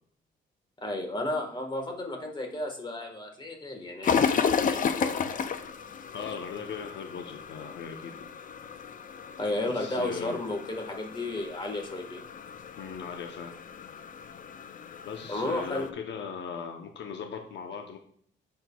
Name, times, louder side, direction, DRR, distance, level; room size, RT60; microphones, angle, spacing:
voice 1, 0.8-5.1 9.4-12.2 15.3-15.9, left 2 dB, 25° left, 3 dB, 1.7 m, -33 dB
sound 1, 4.0-15.9, left 6 dB, 40° left, 0.5 m, -33 dB
voice 2, 6.1-8.1 9.7-10.4 12.7-13.5 15.0-18.0, left 6 dB, 65° left, 3 dB, 0.9 m, -38 dB
7.8 x 6.5 x 2.4 m, 0.63 s
cardioid pair, 90°, 20 cm